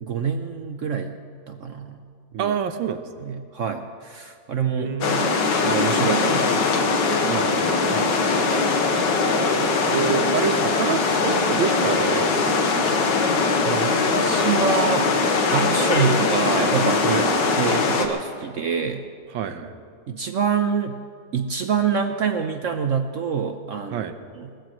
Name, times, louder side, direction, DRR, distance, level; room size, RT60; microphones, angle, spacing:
voice 1, 0.0-1.1 1.5-2.0 2.3-2.6 3.2-4.9 5.6-7.4 7.9-8.1 13.6-15.1 15.5-17.3 17.6-19.0 20.1-21.0 21.3-24.1 24.3-24.5, right 6 dB, 65° right, 7 dB, 0.7 m, -26 dB
voice 2, 2.4-3.3 4.7-5.4 7.2-7.8 8.9-9.1 9.5-12.9 17.1-17.3 19.3-19.7 23.9-24.1, right 7 dB, 85° right, 9 dB, 1.6 m, -28 dB
sound 1, 5.0-18.1, left 4 dB, 70° left, 1.9 m, -21 dB
20.5 x 20.0 x 3.1 m, 2.3 s
omnidirectional pair, 2.1 m